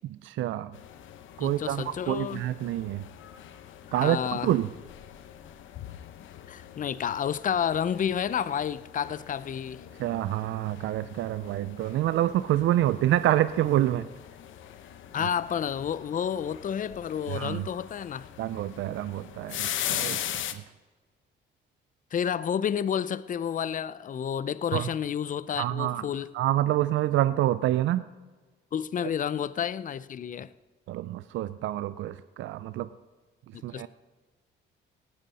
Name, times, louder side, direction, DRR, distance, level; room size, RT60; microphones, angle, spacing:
voice 1, 0.2-0.7 1.4-3.0 3.9-4.7 10.0-14.1 17.3-17.6 18.4-20.2 20.5-20.6 24.7-24.9 25.6-26.0 26.3-28.0 30.9-32.9 33.6-33.9, right 13 dB, 75° right, 0.4 m, -27 dB
sound 1, 0.7-20.5, left 11 dB, 75° left, 0.9 m, -41 dB
voice 2, 1.4-2.4 3.9-4.5 6.5-9.8 15.1-18.3 22.1-26.3 28.7-30.5 33.7-33.9, left 8 dB, 40° left, 0.5 m, -30 dB
17.5 x 9.2 x 4.2 m
cardioid pair, 90°, 20 cm